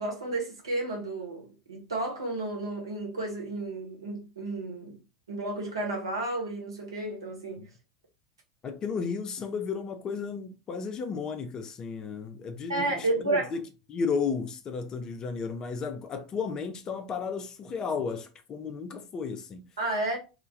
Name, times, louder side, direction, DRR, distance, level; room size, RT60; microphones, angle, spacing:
voice 1, 0.0-5.0 5.3-7.7 12.7-13.5 19.8-20.2, right 2 dB, 75° right, 0.8 m, -32 dB
voice 2, 8.6-13.6 13.9-19.7, left 5 dB, 30° left, 0.4 m, -33 dB
2.2 x 2.1 x 2.7 m
figure-of-eight pair, 80°, 2 cm